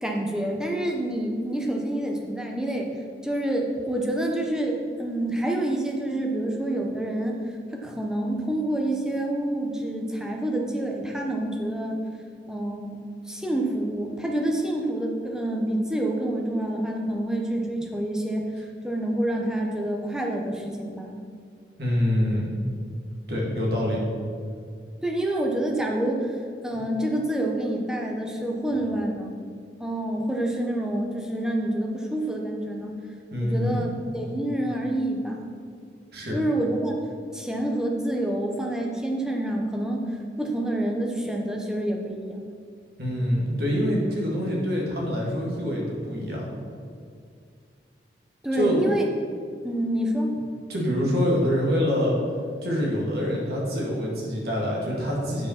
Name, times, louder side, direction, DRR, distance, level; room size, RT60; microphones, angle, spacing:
voice 1, 0.0-2.9 3.2-7.4 7.7-12.0 12.5-18.5 18.8-21.2 25.0-26.3 26.6-29.4 29.8-33.0 33.4-35.5 36.3-36.9 37.3-40.0 40.4-42.4 48.4-49.1 49.6-50.3, right 1 dB, 5° right, 0 dB, 0.9 m, -27 dB
voice 2, 21.8-22.5 23.3-24.0 33.3-33.8 36.1-36.4 43.0-46.5 48.5-48.8 50.7-52.2 52.6-55.5, equal, 65° right, -3 dB, 2.0 m, -25 dB
8.9 x 5.1 x 5.9 m, 2.2 s
head